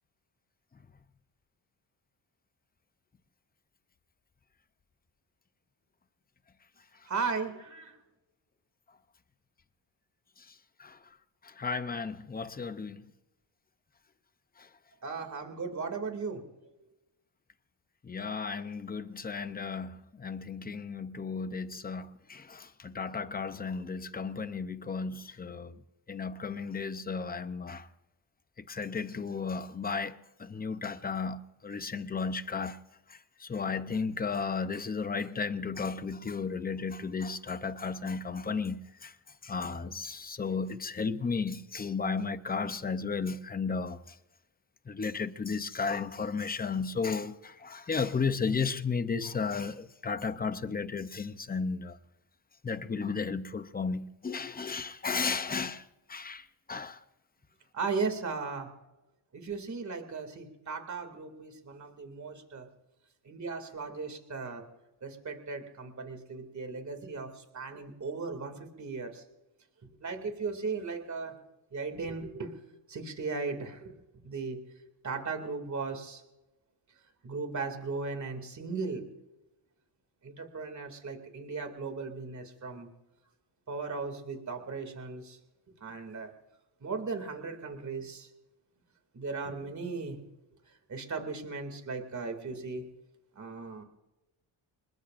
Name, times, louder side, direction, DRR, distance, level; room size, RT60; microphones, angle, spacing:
voice 1, 7.1-8.0 15.0-16.5 57.7-58.7 59.3-62.7 63.2-64.6 65.0-69.2 70.0-71.3 71.7-72.5 72.9-74.0 74.2-74.6 75.0-76.2 77.2-79.1 80.2-82.9 83.7-85.4 85.8-86.3 86.8-88.3 89.1-90.2 90.9-92.8 93.4-93.8, right 4 dB, 35° right, 2.4 m, -37 dB
voice 2, 11.4-13.0 18.0-25.8 26.1-27.9 28.7-32.8 33.1-39.1 39.4-44.0 44.9-52.0 52.6-55.8 56.1-57.0, left 5 dB, 20° left, 0.6 m, -34 dB
26.5 x 21.5 x 2.5 m
wide cardioid pair, 180°, 49 cm